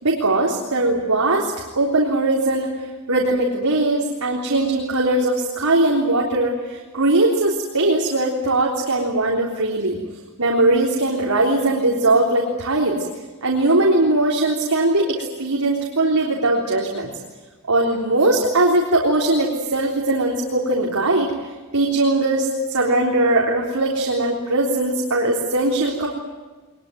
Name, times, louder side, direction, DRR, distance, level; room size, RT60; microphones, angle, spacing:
voice 1, 0.0-2.7 3.1-10.0 10.4-13.0 13.4-17.1 17.7-21.3 21.7-26.1, right 2 dB, 80° right, -2 dB, 3.6 m, -20 dB
22.0 x 22.0 x 9.3 m, 1.3 s
head